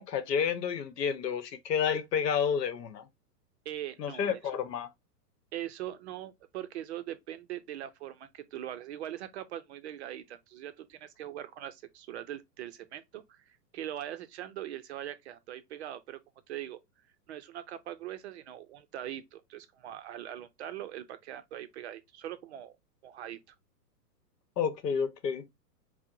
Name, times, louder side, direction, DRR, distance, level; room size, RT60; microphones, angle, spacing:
voice 1, 0.0-3.1 4.0-4.9 24.6-25.5, left 7 dB, 80° left, 0.9 m, -30 dB
voice 2, 3.7-4.4 5.5-16.2 16.5-16.8 17.3-22.8 23.0-23.5, right 12 dB, 45° right, 0.5 m, -41 dB
4.4 x 2.1 x 2.4 m
hypercardioid pair, 125°, 48 cm